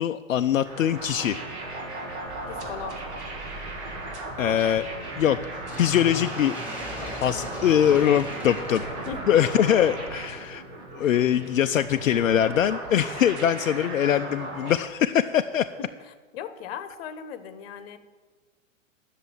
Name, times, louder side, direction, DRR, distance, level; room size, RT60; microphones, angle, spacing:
voice 1, 0.0-1.4 4.4-4.8 5.2-6.6 7.0-8.8 9.3-10.6 11.0-15.7, left 10 dB, 80° left, 8 dB, 0.6 m, -23 dB
sound 1, 0.6-14.8, right 2 dB, 55° right, 2.8 m, -36 dB
thin metal sliding door close noslam, 2.3-10.3, equal, 5° right, 3.9 m, -40 dB
voice 2, 2.5-3.0 9.0-9.8 11.0-11.2 13.8-13.9 16.0-18.0, left 8 dB, 50° left, 12 dB, 1.1 m, -38 dB
10.0 x 6.7 x 8.9 m, 1.4 s
figure-of-eight pair, 105°, 39 cm